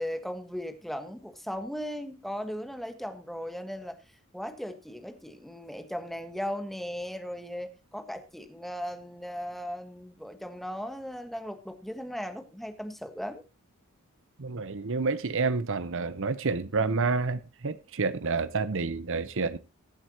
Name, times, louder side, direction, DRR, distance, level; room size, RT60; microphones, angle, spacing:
voice 1, 0.0-4.0 4.3-13.4, equal, ahead, 1.4 m, -37 dB
voice 2, 14.4-19.6, right 4 dB, 60° right, 0.9 m, -29 dB
21.5 x 7.9 x 2.9 m
head